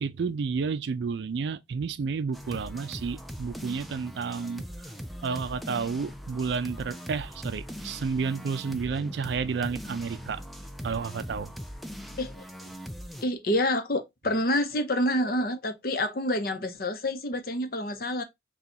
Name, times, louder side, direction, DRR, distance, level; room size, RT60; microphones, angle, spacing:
voice 1, 0.0-4.6 5.2-10.4 10.8-11.5, right 5 dB, 70° right, 0.4 m, -31 dB
sound 1, 2.3-13.2, equal, ahead, 0.3 m, -41 dB
voice 2, 13.2-18.2, left 1 dB, 50° left, 0.7 m, -28 dB
4.4 x 2.3 x 3.8 m
head